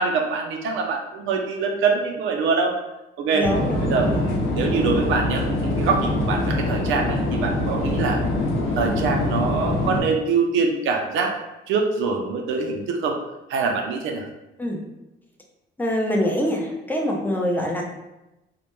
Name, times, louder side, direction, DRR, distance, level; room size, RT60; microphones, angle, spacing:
voice 1, 0.0-2.8 3.2-3.5 3.8-5.4 5.8-8.2 8.7-11.3 11.7-13.2 13.5-14.2, right 4 dB, 85° right, 2 dB, 0.4 m, -24 dB
voice 2, 3.3-4.2 14.6-14.8 15.8-17.8, equal, 10° left, 0 dB, 0.5 m, -24 dB
sound 1, 3.4-10.0, left 2 dB, 90° left, 0.5 m, -24 dB
2.1 x 2.1 x 3.0 m, 0.96 s
cardioid pair, 90°, 20 cm